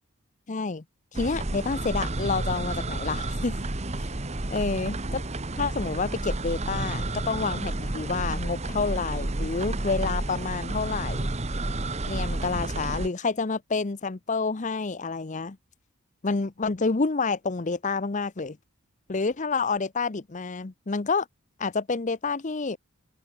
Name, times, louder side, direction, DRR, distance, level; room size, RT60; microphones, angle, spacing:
voice 1, 0.5-0.8 1.1-3.5 4.0-4.1 4.5-5.2 5.6-11.3 12.1-15.6 16.2-18.6 19.1-21.3 21.6-22.8, left 4 dB, 35° left, 0.7 m, -28 dB
sound 1, 1.1-13.1, right 2 dB, 30° right, 1.2 m, -31 dB
open air
head